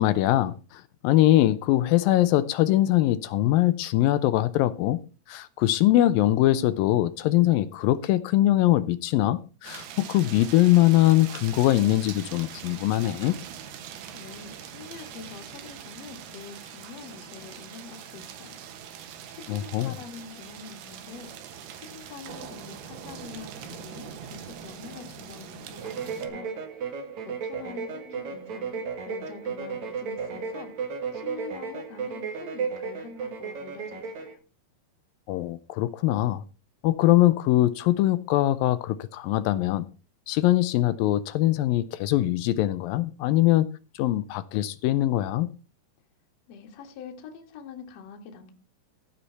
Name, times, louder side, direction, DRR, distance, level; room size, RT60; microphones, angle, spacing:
voice 1, 0.0-5.0 5.3-13.4 19.5-20.0 35.3-36.4 36.8-39.9 40.3-43.7 44.0-45.5, left 15 dB, 80° left, 2.2 m, -22 dB
sound 1, 9.6-26.3, right 8 dB, 90° right, 3.3 m, -42 dB
voice 2, 14.1-18.6 18.9-34.4 46.5-48.6, left 6 dB, 55° left, 2.3 m, -45 dB
sound 2, 25.8-34.3, right 5 dB, 55° right, 2.7 m, -34 dB
15.0 x 5.6 x 5.7 m
omnidirectional pair, 4.4 m